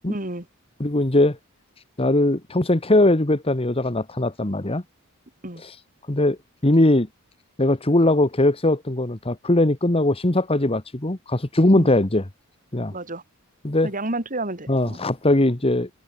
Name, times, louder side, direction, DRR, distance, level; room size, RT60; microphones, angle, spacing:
voice 1, 0.1-0.5 5.4-5.6 11.7-11.9 12.9-13.2 13.8-15.0, right 2 dB, 40° right, 4.9 m, -30 dB
voice 2, 0.8-1.4 2.0-4.8 6.1-6.4 6.6-7.1 7.6-12.2 12.7-12.9 13.6-13.9 14.7-15.9, left 1 dB, 25° left, 1.4 m, -20 dB
head